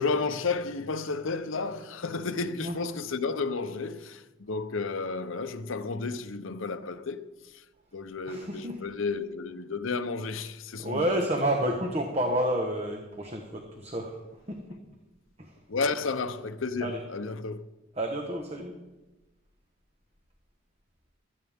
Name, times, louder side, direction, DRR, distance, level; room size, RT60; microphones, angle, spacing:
voice 1, 0.0-7.6 7.9-11.2 15.7-17.8, left 4 dB, 75° left, 0.7 m, -32 dB
voice 2, 8.3-8.8 10.8-14.2 14.5-14.6 15.4-15.6 16.8-17.0 18.0-18.7, right 1 dB, 30° right, 1.2 m, -29 dB
16.5 x 13.5 x 3.6 m
head